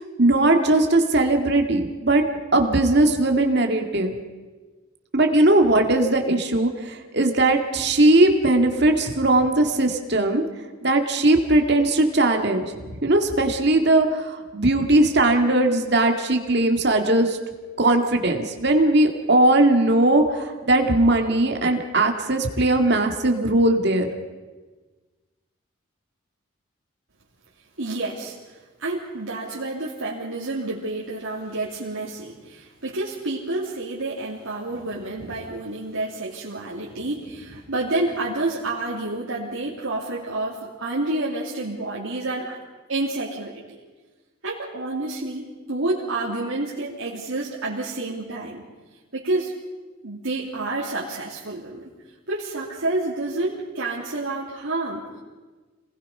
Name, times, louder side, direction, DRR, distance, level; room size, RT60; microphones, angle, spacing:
voice 1, 0.2-2.2 2.5-4.1 5.1-10.4 10.8-12.7 13.0-17.4 17.8-24.1, right 2 dB, 55° right, 4 dB, 2.2 m, -19 dB
voice 2, 27.8-28.3 28.8-42.6 42.9-43.6 44.4-48.6 49.1-49.5 50.0-51.9 52.3-55.2, right 2 dB, 85° right, -7 dB, 3.1 m, -29 dB
27.5 x 20.0 x 5.6 m, 1.3 s
head